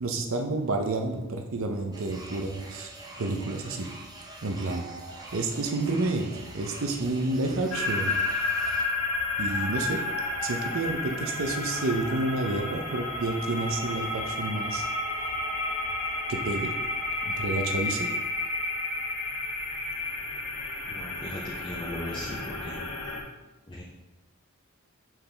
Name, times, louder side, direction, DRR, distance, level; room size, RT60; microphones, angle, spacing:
voice 1, 0.0-2.9 3.2-3.9 4.4-4.9 5.3-8.1 9.4-10.0 10.4-14.9 16.3-16.7 17.2-18.1, right 2 dB, 60° right, 3 dB, 0.6 m, -29 dB
sound 1, 1.9-8.8, right 2 dB, 15° right, 0.6 m, -45 dB
sound 2, 4.7-18.1, equal, 35° right, 1.0 m, -46 dB
sound 3, 7.7-23.2, left 2 dB, 80° left, 1.2 m, -31 dB
voice 2, 20.9-22.8 23.7-23.8, left 1 dB, 20° left, -4 dB, 0.6 m, -38 dB
7.4 x 4.5 x 3.3 m, 1.1 s
head